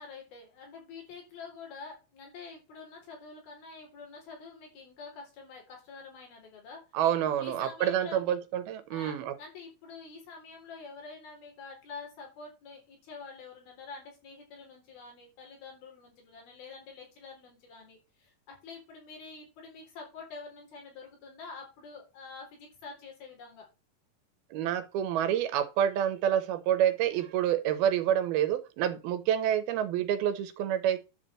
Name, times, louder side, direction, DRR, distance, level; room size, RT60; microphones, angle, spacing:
voice 1, 0.0-6.8 7.4-8.4 8.9-23.7, left 4 dB, 80° left, 5.7 m, -47 dB
voice 2, 6.9-9.4 24.5-31.0, right 10 dB, 90° right, 3.0 m, -28 dB
11.0 x 4.3 x 7.7 m
omnidirectional pair, 4.3 m